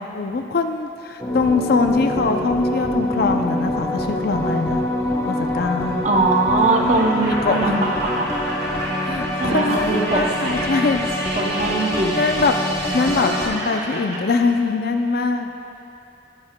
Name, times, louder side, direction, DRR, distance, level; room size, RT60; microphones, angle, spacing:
voice 1, 0.1-4.8 5.3-6.0 7.4-7.7 9.0-11.0 11.4-11.5 12.1-12.5 12.9-15.5, left 4 dB, 55° left, 6 dB, 0.4 m, -22 dB
sound 1, 1.2-13.5, left 1 dB, 15° left, 0.8 m, -25 dB
voice 2, 6.0-8.3 9.4-10.6 11.3-12.3 12.9-13.2, right 3 dB, 40° right, 3 dB, 0.7 m, -21 dB
Laughter, 6.5-14.2, right 1 dB, 55° right, 1.8 m, -32 dB
14.0 x 9.7 x 2.2 m, 2.7 s
head